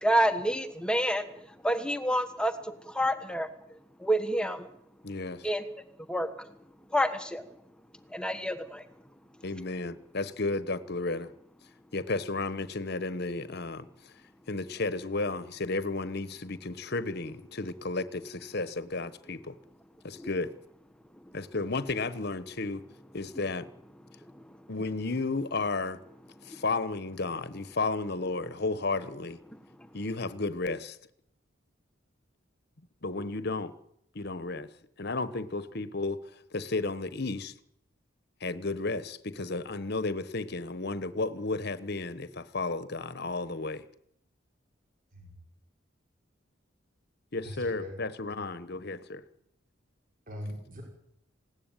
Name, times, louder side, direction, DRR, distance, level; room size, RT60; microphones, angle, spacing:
voice 1, 0.0-1.3 1.6-3.5 4.0-4.7 5.4-5.6 6.1-6.3 6.9-7.4 8.1-8.8 20.2-20.3, equal, 5° left, 1.3 m, -28 dB
voice 2, 5.0-5.5 9.4-11.3 11.9-14.1 14.5-19.6 20.0-20.6 21.3-22.8 23.1-23.7 24.7-26.0 26.4-29.4 29.9-31.0 33.0-33.7 34.1-34.7 35.0-37.5 38.4-43.8 47.3-49.2, left 3 dB, 55° left, 1.2 m, -33 dB
voice 3, 47.4-47.9 50.3-50.8, equal, 45° right, 5.7 m, -41 dB
20.5 x 17.0 x 9.1 m
head